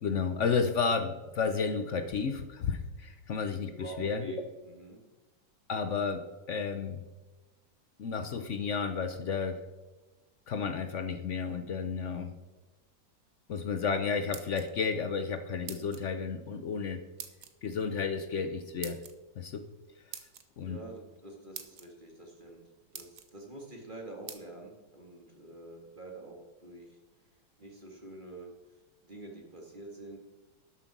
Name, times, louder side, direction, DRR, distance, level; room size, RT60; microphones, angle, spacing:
voice 1, 0.0-4.2 5.7-6.2 6.5-7.0 8.0-9.6 10.5-12.3 13.5-17.0 17.6-19.0 19.4-19.7 20.6-20.8, left 5 dB, 75° left, 9 dB, 0.6 m, -32 dB
voice 2, 3.7-5.0 20.6-22.6 22.9-27.0 27.6-28.5 29.0-30.2, right 2 dB, 25° right, 1 dB, 2.0 m, -47 dB
sound 1, 14.1-14.9 15.7-16.1 17.2-17.5 18.8-19.1 20.1-20.4 21.2-21.3 21.5-21.9 22.5-22.6 22.9-23.3 24.3-24.4, right 7 dB, 50° right, 1.2 m, -44 dB
12.5 x 7.6 x 6.0 m, 1.2 s
omnidirectional pair, 2.3 m